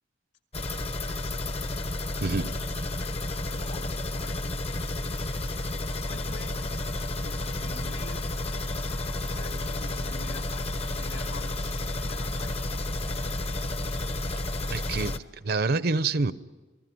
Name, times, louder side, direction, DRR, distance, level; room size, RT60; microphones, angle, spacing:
sound 1, 0.5-15.2, left 2 dB, 35° left, 0.9 m, -31 dB
voice 1, 2.2-2.5 14.7-15.2 15.4-16.3, right 3 dB, 55° right, 0.7 m, -26 dB
voice 2, 3.5-4.5 6.0-6.6 7.2-8.2 9.3-12.6, left 2 dB, 65° left, 2.6 m, -46 dB
30.0 x 19.0 x 9.5 m
head